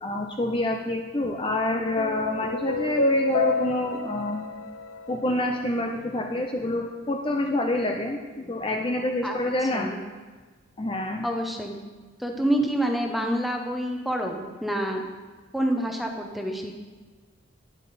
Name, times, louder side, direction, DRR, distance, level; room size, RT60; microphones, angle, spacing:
voice 1, 0.0-4.5 5.1-9.9 10.8-11.3, left 1 dB, 25° left, 2 dB, 0.5 m, -27 dB
sound 1, 1.2-5.8, left 2 dB, 85° left, 0.7 m, -29 dB
voice 2, 9.2-10.0 11.2-11.7 12.2-15.0 15.5-16.7, right 1 dB, ahead, 2 dB, 0.9 m, -27 dB
11.5 x 9.6 x 4.2 m, 1.4 s
head